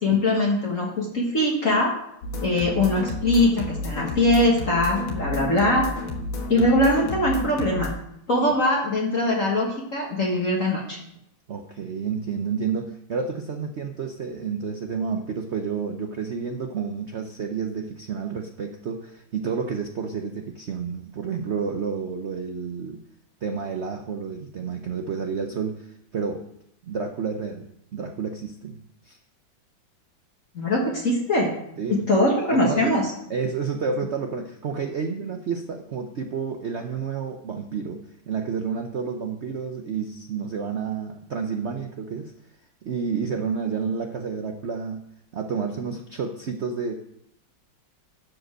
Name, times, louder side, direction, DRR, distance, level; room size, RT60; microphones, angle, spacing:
voice 1, 0.0-1.9 2.4-5.9 6.5-7.9 8.3-11.0 30.5-31.5 31.9-33.1, left 1 dB, 45° left, -3 dB, 1.8 m, -22 dB
sound 1, 2.2-7.9, left 2 dB, 80° left, 2.2 m, -31 dB
voice 2, 11.5-23.0 23.4-26.5 26.8-29.2 31.8-32.1 32.5-33.0 33.3-42.3 42.8-45.1 45.3-46.9, right 5 dB, 90° right, 4 dB, 0.6 m, -30 dB
12.0 x 5.2 x 6.2 m, 0.77 s
omnidirectional pair, 2.2 m